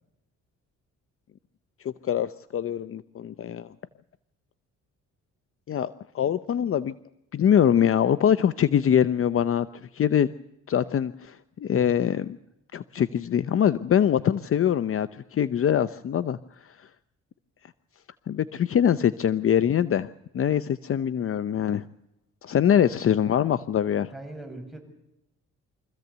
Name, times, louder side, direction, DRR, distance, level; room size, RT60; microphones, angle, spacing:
voice 1, 1.8-3.7 5.7-6.9 7.3-10.3 10.7-12.4 12.7-16.4 16.6-16.9 18.3-20.1 20.3-21.8 22.4-24.1, left 9 dB, 45° left, 14 dB, 0.7 m, -23 dB
voice 2, 24.1-24.8, right 2 dB, ahead, 3 dB, 6.3 m, -40 dB
25.0 x 15.0 x 8.1 m, 0.85 s
cardioid pair, 90°, 30 cm